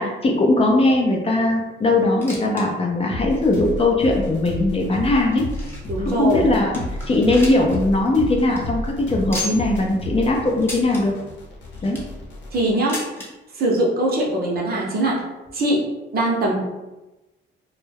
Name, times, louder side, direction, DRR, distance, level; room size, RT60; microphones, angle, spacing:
voice 1, 0.0-5.5 6.0-6.8 7.1-11.1 11.8-12.0, left 2 dB, 30° left, 0 dB, 0.5 m, -19 dB
sound 1, 2.0-2.7 2.9-3.0 3.7-3.8 4.5-6.0 6.4-6.5 6.7-7.8 8.1-8.2 8.4-8.6 9.3-9.8 10.6-11.0 11.6-12.2 12.9-13.3 14.2-14.3 14.5-14.6 15.5-15.6, left 1 dB, 10° left, 0.8 m, -33 dB
sound 2, 3.1-12.7, left 1 dB, 65° left, 0.8 m, -32 dB
voice 2, 5.9-6.4 12.5-13.0 13.6-15.2 15.5-15.9 16.1-16.6, right 1 dB, 50° right, -2 dB, 0.8 m, -21 dB
2.2 x 2.1 x 3.3 m, 1.1 s
cardioid pair, 90°, 20 cm